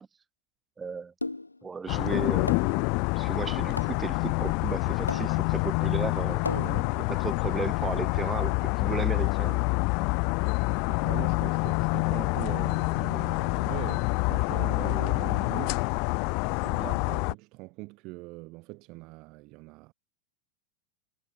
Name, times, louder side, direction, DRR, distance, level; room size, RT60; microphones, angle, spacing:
voice 1, 0.8-1.1 1.6-2.5 3.2-6.4 7.1-9.6, right 5 dB, 15° right, 4.8 m, -34 dB
sound 1, 1.2-1.7 2.5-2.9 3.8-4.2 5.1-5.6 6.4-7.0, left 2 dB, 85° left, 4.0 m, -36 dB
sound 2, 1.9-17.3, left 34 dB, 45° left, 1.6 m, -27 dB
voice 2, 6.5-7.0 10.9-15.9 16.4-19.9, right 24 dB, 40° right, 3.5 m, -41 dB
figure-of-eight pair, 90°, 0 cm